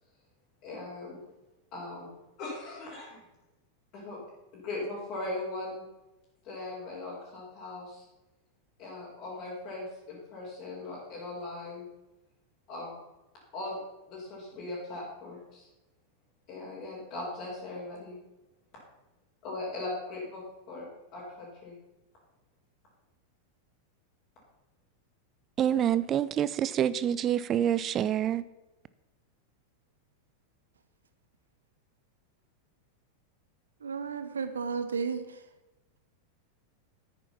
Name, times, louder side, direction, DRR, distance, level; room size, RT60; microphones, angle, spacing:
voice 1, 0.6-1.2 1.7-2.1 2.4-3.2 3.9-4.2 4.5-5.8 6.4-8.0 8.8-11.9 12.7-12.9 13.5-13.8 14.1-15.7 16.5-18.2 19.4-20.4 20.7-20.8 21.1-21.7, left 2 dB, 40° left, -7 dB, 4.5 m, -39 dB
voice 2, 25.6-28.4, right 10 dB, 30° right, 17 dB, 0.4 m, -27 dB
voice 3, 33.8-35.4, right 5 dB, 70° right, 10 dB, 1.0 m, -33 dB
10.0 x 9.4 x 5.8 m, 1.0 s
figure-of-eight pair, 90°, 0 cm